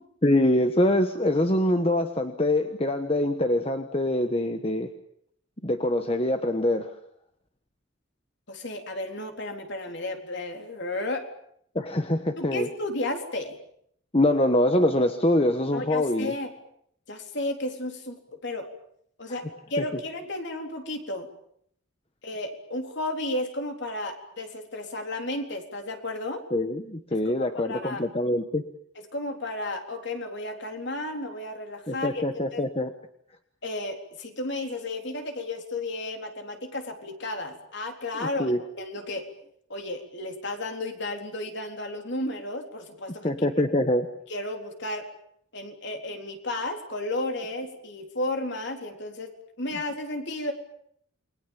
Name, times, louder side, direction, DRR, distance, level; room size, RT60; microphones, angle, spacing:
voice 1, 0.2-4.9 5.6-6.9 11.7-12.7 14.1-16.3 26.5-28.6 31.9-32.9 38.2-38.6 43.2-44.1, left 1 dB, 25° left, 7 dB, 1.3 m, -24 dB
voice 2, 8.5-11.2 12.4-13.6 15.7-16.5 17.1-18.7 19.2-19.4 19.7-21.3 22.2-26.4 27.3-28.1 29.1-32.2 32.5-32.6 33.6-39.3 39.7-43.3 44.3-45.0 45.5-49.3 49.6-50.5, left 2 dB, 55° left, 4 dB, 3.9 m, -33 dB
29.0 x 22.5 x 7.4 m, 0.70 s
head